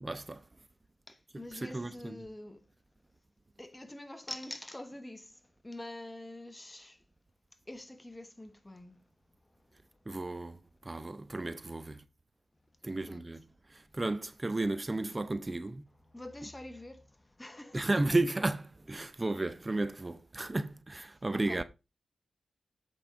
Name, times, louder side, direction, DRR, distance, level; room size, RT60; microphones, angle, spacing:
voice 1, 0.0-0.4 1.3-2.2 10.1-12.0 12.8-15.8 16.4-16.5 17.7-21.6, right 2 dB, 25° right, 0.6 m, -34 dB
voice 2, 1.1-2.6 3.6-5.3 5.6-7.0 7.7-8.9 13.1-13.3 15.0-15.3 16.1-17.1 17.4-18.1 21.3-21.6, left 1 dB, 15° left, 1.1 m, -45 dB
8.1 x 5.3 x 4.8 m
cardioid pair, 70°, 0 cm